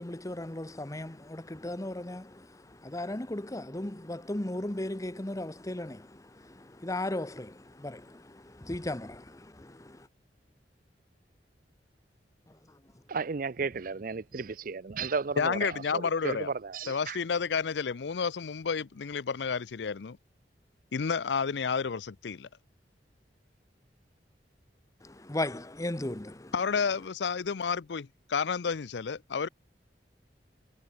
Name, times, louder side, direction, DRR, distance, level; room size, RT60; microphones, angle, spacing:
voice 1, 0.0-10.1 12.5-12.8 25.0-26.5, left 1 dB, 20° left, 1.0 m, -37 dB
voice 2, 13.1-17.2, right 4 dB, 50° right, 0.6 m, -34 dB
voice 3, 15.4-16.5 16.9-20.2 20.9-22.5 26.5-29.5, left 5 dB, 80° left, 0.5 m, -30 dB
head